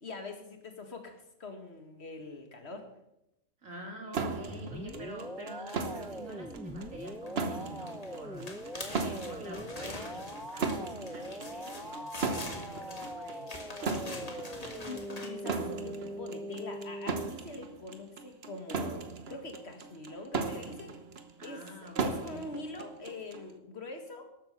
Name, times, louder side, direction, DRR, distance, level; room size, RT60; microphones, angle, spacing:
voice 1, 0.0-2.9 14.9-21.0 21.4-24.3, left 2 dB, 50° left, 5 dB, 2.2 m, -44 dB
voice 2, 3.6-8.6 8.9-13.5 13.8-14.4 21.4-22.5, right 1 dB, 70° right, 1 dB, 3.5 m, -48 dB
sound 1, 4.1-23.5, right 4 dB, 50° right, 1.2 m, -38 dB
sound 2, 4.5-17.3, equal, ahead, 0.6 m, -42 dB
sound 3, 5.7-6.2 7.0-7.3 7.6-15.3, left 2 dB, 30° left, 1.8 m, -45 dB
13.0 x 8.7 x 6.8 m, 0.86 s
omnidirectional pair, 1.4 m